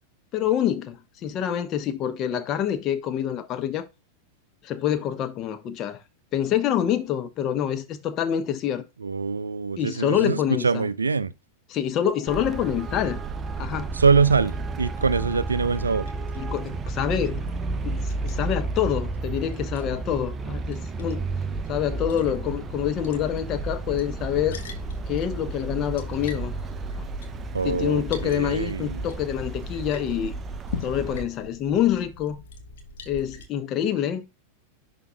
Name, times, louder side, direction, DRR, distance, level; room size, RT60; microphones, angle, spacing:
voice 1, 0.3-3.9 4.6-6.0 6.3-8.8 9.8-10.9 11.7-13.2 13.6-13.9 16.4-17.4 17.8-21.2 21.7-24.6 25.1-26.5 27.0-27.1 27.6-30.3 30.8-32.4 33.1-34.2, left 10 dB, 35° left, 0.9 m, -26 dB
voice 2, 9.0-11.3 13.9-16.0 27.5-29.1, right 5 dB, 75° right, 0.4 m, -24 dB
Traffic noise roadway noise, 12.3-31.2, right 3 dB, 20° right, 0.7 m, -32 dB
Liquid, 14.5-33.4, left 3 dB, 60° left, 1.4 m, -43 dB
11.0 x 4.0 x 2.2 m
figure-of-eight pair, 90°, 0 cm